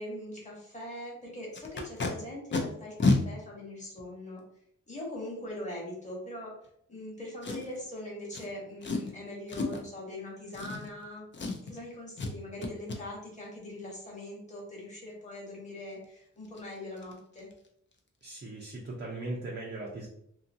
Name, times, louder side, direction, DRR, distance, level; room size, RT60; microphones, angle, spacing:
voice 1, 0.0-4.4 4.9-6.5 6.9-11.3 11.7-17.5, left 1 dB, 25° left, -4 dB, 1.1 m, -42 dB
Packing tape duct tape, 1.5-2.1 2.5-2.6 3.0-3.2 4.0-4.1 7.4-7.8 8.3-8.5 8.8-9.1 9.5-9.9 10.5-11.1 11.3-11.8 12.2-12.3 12.6-13.0 16.0-16.1 16.4-16.6 17.0-17.1 17.4-17.7 17.9-18.0, left 3 dB, 40° left, 0.5 m, -30 dB
voice 2, 18.2-20.1, right 2 dB, 35° right, -3 dB, 0.5 m, -38 dB
2.7 x 2.5 x 2.6 m, 0.70 s
wide cardioid pair, 140°, 30 cm